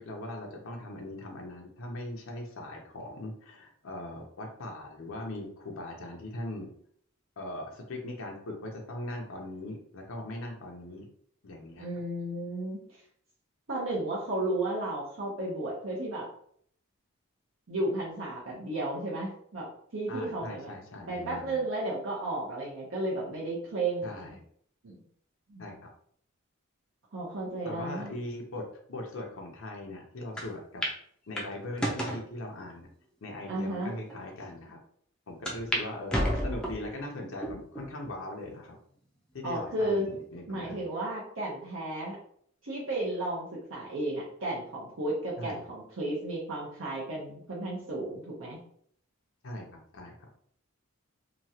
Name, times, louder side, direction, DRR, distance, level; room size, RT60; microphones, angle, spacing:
voice 1, 0.0-6.7 7.4-11.1 11.4-11.9 20.1-21.6 24.0-24.4 25.6-25.9 27.6-30.8 31.3-32.9 33.2-34.8 35.3-38.8 39.3-40.8 45.4-45.6 49.4-49.7 49.9-50.3, left 1 dB, 70° left, 1 dB, 0.6 m, -40 dB
voice 2, 11.8-13.0 13.7-16.3 17.7-20.7 21.1-24.3 24.8-25.0 25.5-25.6 27.1-28.1 33.5-33.9 39.4-40.1 40.5-42.2 42.6-48.6, right 2 dB, 65° right, -5 dB, 0.7 m, -33 dB
sound 1, 30.4-30.5 30.8-31.0 31.4-32.2 32.9-33.0 33.7-33.8 34.1-34.2 35.5-35.8 36.1-36.9 37.4-37.9 38.4-38.5 39.6-40.1, equal, 5° left, 0.5 m, -31 dB
3.0 x 2.3 x 2.7 m, 0.63 s
head